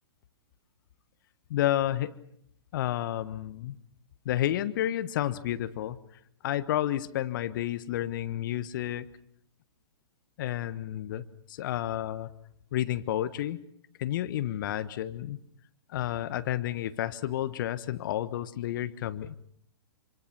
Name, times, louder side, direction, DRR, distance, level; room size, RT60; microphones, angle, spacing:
voice 1, 1.5-2.1 2.7-3.8 4.2-6.0 6.4-9.1 10.4-12.3 12.7-13.6 14.0-15.4 15.9-19.4, left 12 dB, 50° left, 14 dB, 1.3 m, -31 dB
27.0 x 26.0 x 6.1 m, 0.68 s
figure-of-eight pair, 115°, 14 cm